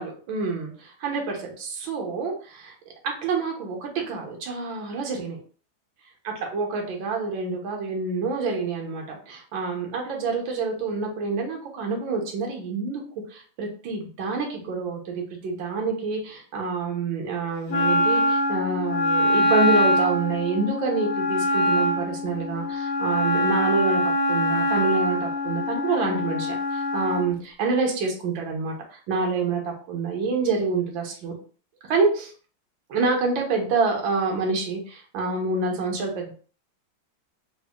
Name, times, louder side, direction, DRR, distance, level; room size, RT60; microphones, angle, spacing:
voice 1, 0.0-2.7 3.0-5.4 6.2-13.0 13.3-31.3 31.8-32.3 32.9-36.3, right 4 dB, 70° right, 2 dB, 1.6 m, -27 dB
Wind instrument woodwind instrument, 17.7-27.3, left 1 dB, 60° left, 0.8 m, -24 dB
4.1 x 2.2 x 3.5 m, 0.41 s
omnidirectional pair, 2.3 m